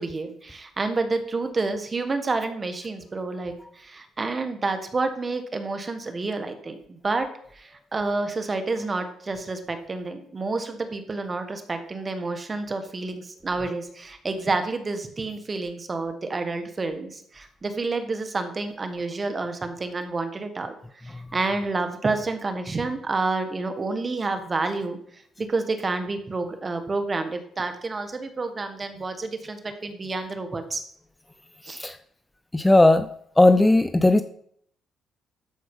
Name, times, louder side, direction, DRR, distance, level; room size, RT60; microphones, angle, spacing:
voice 1, 0.0-7.3 7.5-20.7 21.0-25.0 25.4-30.8 31.6-31.8, right 3 dB, 30° right, 7 dB, 1.5 m, -29 dB
voice 2, 32.5-33.1 33.4-34.2, left 2 dB, 15° left, 11 dB, 0.5 m, -17 dB
13.0 x 4.7 x 5.5 m, 0.65 s
cardioid pair, 90°, 0 cm